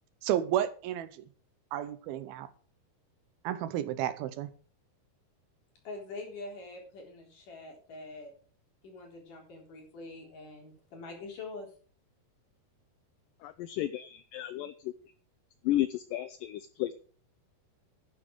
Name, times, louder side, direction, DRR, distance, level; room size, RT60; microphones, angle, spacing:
voice 1, 0.2-1.1 1.7-2.5 3.4-4.5, right 11 dB, 80° right, 13 dB, 2.6 m, -31 dB
voice 2, 5.9-8.3 8.8-11.7, left 3 dB, 55° left, 1 dB, 5.2 m, -44 dB
voice 3, 13.4-14.9 15.6-16.9, left 14 dB, 80° left, 12 dB, 2.0 m, -33 dB
12.0 x 10.0 x 4.8 m, 0.42 s
omnidirectional pair, 4.5 m